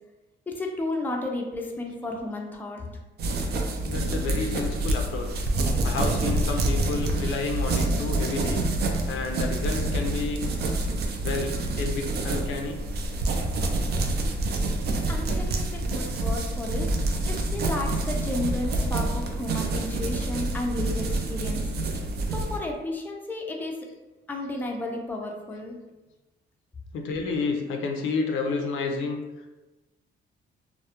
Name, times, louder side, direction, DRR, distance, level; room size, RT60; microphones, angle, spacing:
voice 1, 0.5-3.0 15.1-16.9 17.2-21.7 22.3-23.8 24.3-25.8, left 1 dB, 10° left, 1 dB, 0.4 m, -33 dB
sound 1, 3.2-22.6, right 2 dB, 55° right, 0.4 m, -27 dB
voice 2, 3.8-5.4 5.8-8.6 9.1-10.5 11.2-12.8 26.9-29.2, left 4 dB, 80° left, 3 dB, 0.4 m, -30 dB
2.3 x 2.0 x 2.8 m, 1.1 s
cardioid pair, 90°, 20 cm